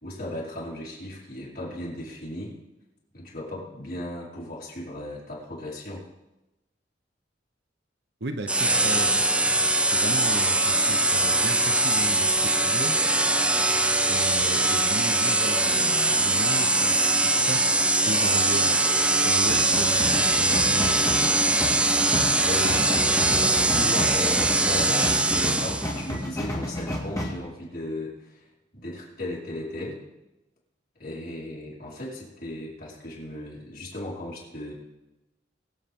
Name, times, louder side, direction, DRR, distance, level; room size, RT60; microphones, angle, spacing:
voice 1, 0.0-2.6 3.1-6.0 22.4-22.9 23.4-28.4 28.7-30.0 31.0-34.7, left 1 dB, 55° left, -6 dB, 5.0 m, -36 dB
voice 2, 8.2-9.3 9.9-13.0 14.1-17.8 18.1-18.8 19.2-21.1 22.6-22.9, right 2 dB, 65° right, 7 dB, 1.1 m, -34 dB
sound 1, 8.5-26.0, right 2 dB, 5° right, 0.6 m, -22 dB
sound 2, 19.5-27.3, equal, 20° left, 2.3 m, -31 dB
23.5 x 8.1 x 3.8 m, 0.99 s
head